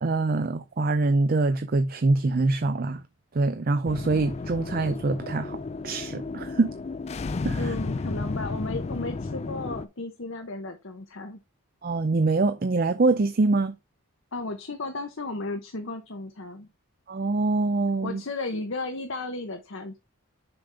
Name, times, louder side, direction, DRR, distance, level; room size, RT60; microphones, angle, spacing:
voice 1, 0.0-3.0 3.3-5.6 5.8-6.7 7.4-7.7 11.8-13.7 17.1-18.2, right 3 dB, 40° right, 0.5 m, -24 dB
sound 1, 3.9-9.9, left 3 dB, 30° left, 0.3 m, -33 dB
voice 2, 7.6-11.4 14.3-16.7 18.0-20.0, left 2 dB, 65° left, 0.9 m, -34 dB
6.9 x 5.3 x 3.4 m
head